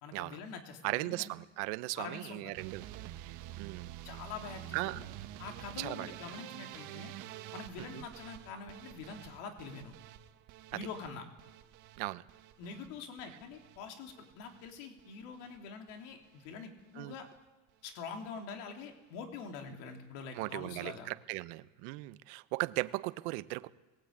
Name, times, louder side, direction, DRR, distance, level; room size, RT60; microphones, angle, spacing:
voice 1, 0.0-1.3 2.0-2.5 4.0-5.0 5.4-7.1 7.5-9.9 10.7-11.2 12.6-17.3 17.8-21.1, left 5 dB, 75° left, 3 dB, 3.3 m, -45 dB
voice 2, 0.8-3.9 4.7-5.0 5.8-6.1 7.8-8.0 12.0-12.3 17.0-17.1 20.3-23.7, right 21 dB, 75° right, 14 dB, 1.0 m, -38 dB
sound 1, 2.6-14.7 15.0-15.6 15.9-16.5 16.8-17.0 17.4-17.5 17.7-17.8, right 13 dB, 55° right, 1.5 m, -49 dB
21.5 x 18.0 x 8.8 m, 1.2 s
cardioid pair, 145°, 37 cm